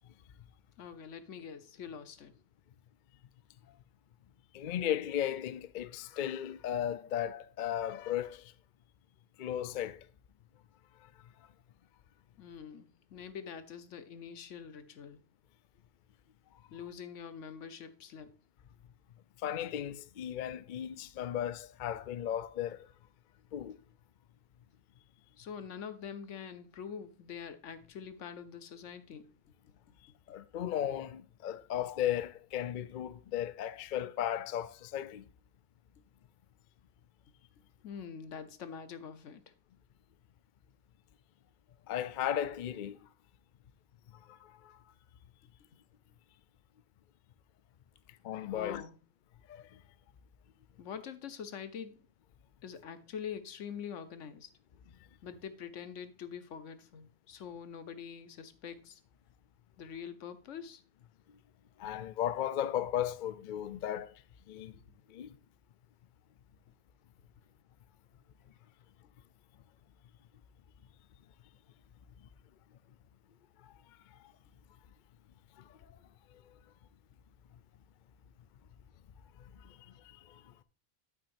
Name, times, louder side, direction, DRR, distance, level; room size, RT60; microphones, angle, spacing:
voice 1, 0.8-2.3 12.4-15.2 16.7-18.3 25.4-29.3 37.8-39.4 48.5-49.0 50.8-52.0 52.6-54.5 55.2-59.0 59.8-60.8, left 7 dB, 80° left, 1.2 m, -45 dB
voice 2, 4.5-8.5 9.4-10.1 19.4-22.9 23.5-23.8 30.3-35.2 41.9-43.0 44.3-44.8 48.2-48.8 49.5-49.8 61.3-61.4 61.8-64.2 64.5-64.8 65.1-65.4 75.6-75.8 79.5-80.5, left 10 dB, 55° left, 0.6 m, -36 dB
8.6 x 8.6 x 2.6 m
omnidirectional pair, 1.3 m